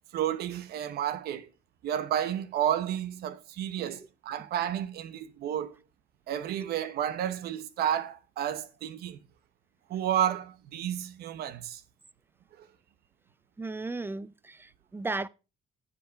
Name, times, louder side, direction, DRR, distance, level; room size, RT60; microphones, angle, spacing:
voice 1, 0.1-1.5 1.8-5.7 6.3-9.2 9.9-11.8, right 10 dB, 70° right, 1.0 m, -31 dB
voice 2, 13.6-15.3, right 3 dB, 15° right, 0.5 m, -35 dB
9.8 x 6.2 x 5.2 m
cardioid pair, 110°, 17 cm